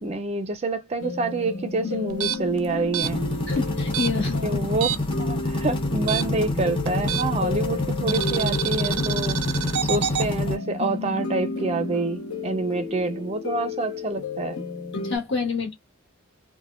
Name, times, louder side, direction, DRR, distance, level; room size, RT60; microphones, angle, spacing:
voice 1, 0.0-3.3 4.4-4.9 5.2-9.4 9.8-14.6, right 3 dB, 30° right, 0.4 m, -27 dB
sound 1, 1.0-15.2, left 4 dB, 80° left, 0.8 m, -33 dB
sound 2, 2.1-5.2 5.5-7.5 8.1-10.3, right 10 dB, 85° right, 0.5 m, -29 dB
sound 3, 3.0-10.6, left 2 dB, 25° left, 0.7 m, -27 dB
voice 2, 3.5-4.6 15.0-15.7, left 4 dB, 55° left, 1.4 m, -28 dB
3.3 x 2.1 x 2.4 m
head